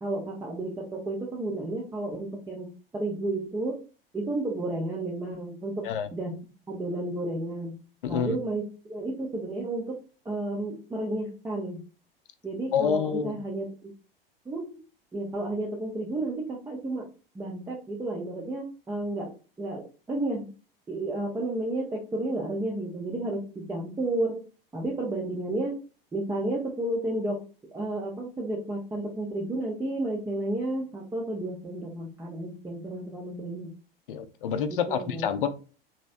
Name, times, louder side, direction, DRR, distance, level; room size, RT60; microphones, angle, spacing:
voice 1, 0.0-2.7 2.9-3.8 4.1-6.3 6.7-7.8 8.1-10.0 10.2-11.8 12.4-13.9 14.5-14.8 15.1-17.1 17.3-19.3 19.6-20.5 20.9-24.4 24.7-25.8 26.1-27.4 27.7-33.7 34.9-35.3, right 2 dB, 10° right, -2 dB, 0.6 m, -32 dB
voice 2, 8.0-8.4 12.7-13.4 34.1-35.5, left 7 dB, 60° left, 11 dB, 0.5 m, -27 dB
3.0 x 2.7 x 2.4 m, 0.36 s
figure-of-eight pair, 85°, 30 cm